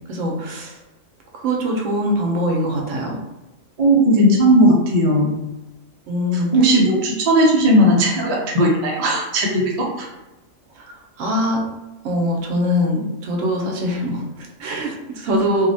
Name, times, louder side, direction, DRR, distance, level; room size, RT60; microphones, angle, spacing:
voice 1, 0.1-0.8 1.4-3.2 6.1-6.5 10.8-11.6 12.0-15.7, equal, 75° right, 0 dB, 0.9 m, -23 dB
voice 2, 3.8-5.4 6.3-9.7 10.0-10.1, equal, 45° right, -2 dB, 0.5 m, -16 dB
2.6 x 2.0 x 2.6 m, 1.0 s
omnidirectional pair, 1.3 m